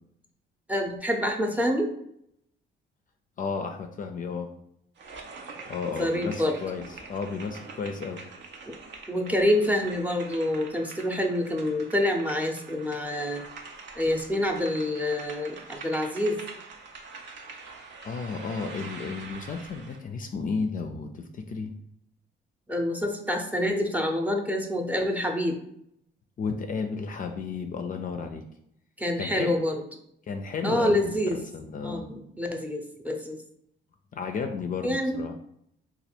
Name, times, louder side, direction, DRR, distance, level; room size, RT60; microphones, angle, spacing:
voice 1, 0.7-1.9 6.0-6.6 9.1-13.4 14.0-16.4 22.7-25.6 29.0-29.8 30.6-31.4 31.8-33.4 34.8-35.2, left 1 dB, 5° right, 3 dB, 0.6 m, -27 dB
voice 2, 3.4-4.5 5.7-8.2 18.0-21.7 26.4-28.5 29.2-29.5 30.3-32.1 34.1-35.3, left 5 dB, 45° left, 6 dB, 0.4 m, -33 dB
sound 1, 5.0-20.0, right 4 dB, 65° right, 0.6 m, -44 dB
3.2 x 2.3 x 4.3 m, 0.73 s
cardioid pair, 90°, 20 cm